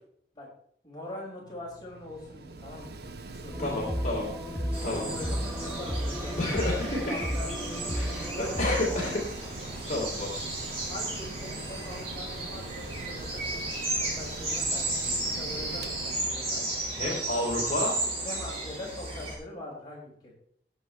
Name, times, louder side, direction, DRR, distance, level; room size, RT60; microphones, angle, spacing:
voice 1, 0.8-3.0 3.2-4.1 4.8-8.9 9.7-10.1 10.9-13.6 14.0-14.9 15.3-16.7 18.2-20.3, left 1 dB, 25° left, -4 dB, 5.6 m, -42 dB
Mechanical fan, 1.4-17.7, right 2 dB, 65° right, 0.9 m, -43 dB
sound 1, 3.5-9.3, equal, ahead, 1.1 m, -34 dB
voice 2, 3.6-4.4 4.8-5.1 6.4-7.2 7.9-9.5 9.9-10.3 16.9-18.0, left 2 dB, 45° left, -4 dB, 3.3 m, -30 dB
sound 2, 4.7-19.3, right 2 dB, 35° right, 6.1 m, -34 dB
19.5 x 8.2 x 3.4 m, 0.62 s
head